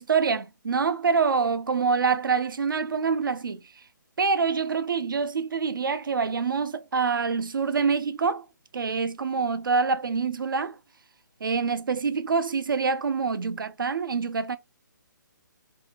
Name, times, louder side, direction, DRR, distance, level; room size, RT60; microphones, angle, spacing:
voice 1, 0.0-3.6 4.2-8.5 8.7-10.8 11.4-14.6, right 5 dB, 80° right, 0.4 m, -26 dB
2.6 x 2.4 x 2.8 m
figure-of-eight pair, 145°, 11 cm